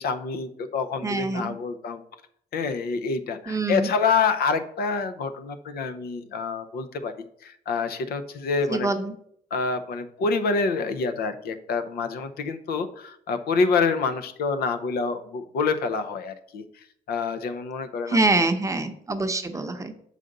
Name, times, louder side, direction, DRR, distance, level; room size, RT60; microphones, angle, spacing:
voice 1, 0.0-2.0 2.5-7.1 7.4-8.9 9.5-16.6 17.1-18.2, left 4 dB, 80° left, 9 dB, 0.7 m, -27 dB
voice 2, 1.0-1.6 3.5-3.9 8.7-9.1 18.1-19.9, right 2 dB, 20° right, 8 dB, 0.7 m, -25 dB
6.6 x 5.0 x 3.8 m, 0.66 s
cardioid pair, 105°, 16 cm